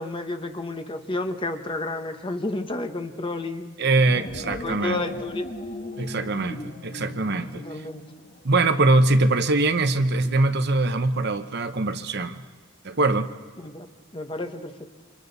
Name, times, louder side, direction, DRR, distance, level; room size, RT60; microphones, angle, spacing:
voice 1, 0.0-3.7 4.2-5.5 7.5-8.0 13.6-14.9, left 2 dB, 25° left, 6 dB, 1.1 m, -31 dB
voice 2, 3.8-5.0 6.0-7.8 8.4-12.4 12.8-13.3, right 2 dB, 55° right, 9 dB, 0.9 m, -22 dB
sound 1, 3.9-8.5, left 2 dB, 45° left, 1.5 m, -38 dB
28.5 x 26.0 x 4.1 m, 1.4 s
head